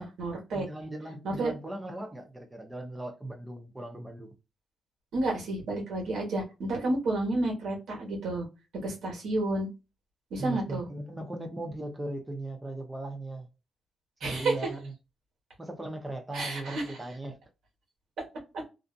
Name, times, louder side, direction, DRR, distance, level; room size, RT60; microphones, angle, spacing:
voice 1, 0.0-0.6 1.2-1.5 5.1-8.5 8.8-9.7 10.3-10.9 14.2-14.5 16.3-16.9, right 2 dB, 80° right, 1.2 m, -30 dB
voice 2, 0.5-4.3 10.4-13.5 14.2-14.9 15.6-17.4, right 1 dB, 15° right, 0.6 m, -38 dB
2.5 x 2.4 x 2.3 m
cardioid pair, 110°, 0 cm